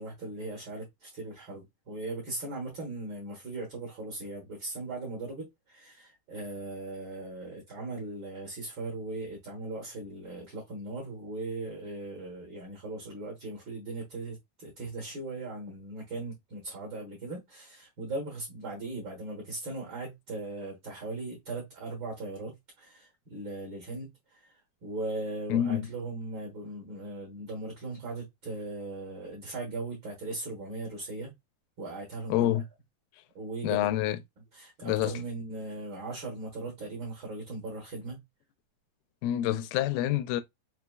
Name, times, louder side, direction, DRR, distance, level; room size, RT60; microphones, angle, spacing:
voice 1, 0.0-31.3 31.8-32.6 33.3-33.9 34.5-38.2, right 2 dB, 65° right, 1.2 m, -39 dB
voice 2, 25.5-25.9 32.3-32.6 33.6-34.2 34.8-35.1 39.2-40.4, left 12 dB, 80° left, 2.2 m, -27 dB
5.9 x 2.9 x 2.3 m
omnidirectional pair, 4.3 m